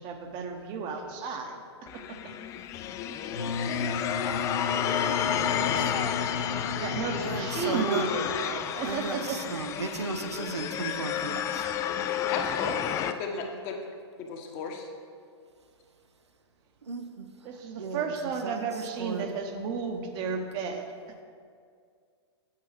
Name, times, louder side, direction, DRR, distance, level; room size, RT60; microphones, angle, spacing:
voice 1, 0.0-2.3 6.8-9.4 17.5-20.9, right 5 dB, 35° right, 5 dB, 1.1 m, -33 dB
sound 1, 1.9-13.1, left 9 dB, 20° left, 0.4 m, -31 dB
Wind instrument woodwind instrument, 3.3-7.8, left 4 dB, 85° left, 0.6 m, -34 dB
voice 2, 7.2-8.1 8.8-11.7 12.6-12.7 16.8-19.3, right 4 dB, 75° right, 8 dB, 0.8 m, -36 dB
voice 3, 12.2-13.8 14.2-14.9, left 5 dB, 40° left, 2 dB, 1.4 m, -35 dB
8.2 x 7.7 x 6.0 m, 2.1 s
figure-of-eight pair, 110°, 14 cm